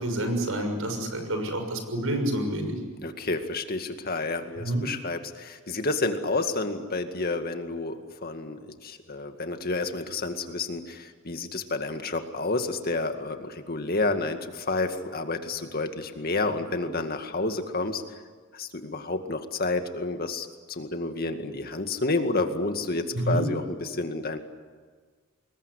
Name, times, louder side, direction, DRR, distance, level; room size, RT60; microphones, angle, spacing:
voice 1, 0.0-2.8 4.6-4.8 23.1-23.4, right 1 dB, 70° right, 6 dB, 6.4 m, -28 dB
voice 2, 3.0-18.0 18.5-24.4, left 3 dB, 45° left, 6 dB, 2.1 m, -30 dB
27.0 x 21.5 x 10.0 m, 1.5 s
head